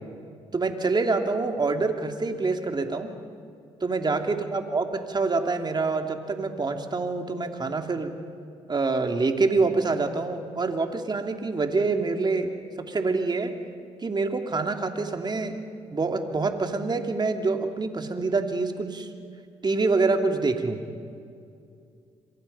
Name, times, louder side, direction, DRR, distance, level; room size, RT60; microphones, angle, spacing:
voice 1, 0.5-3.1 3.8-8.2 8.7-13.5 14.0-15.6 15.9-19.1 19.6-20.8, right 3 dB, 35° right, 5 dB, 2.8 m, -26 dB
26.5 x 24.0 x 5.6 m, 2.4 s
hypercardioid pair, 55°, 13 cm